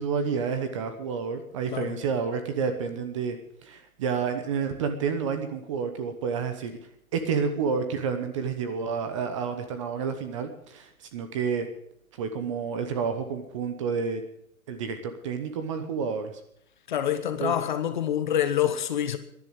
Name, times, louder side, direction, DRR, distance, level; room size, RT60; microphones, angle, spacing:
voice 1, 0.0-3.4 3.6-6.8 7.1-11.7 12.2-14.3 14.7-16.3 17.4-17.6, right 6 dB, 20° right, 1.0 m, -29 dB
voice 2, 16.9-19.2, left 10 dB, 35° left, 1.1 m, -26 dB
13.5 x 11.0 x 8.1 m
hypercardioid pair, 160°, 43 cm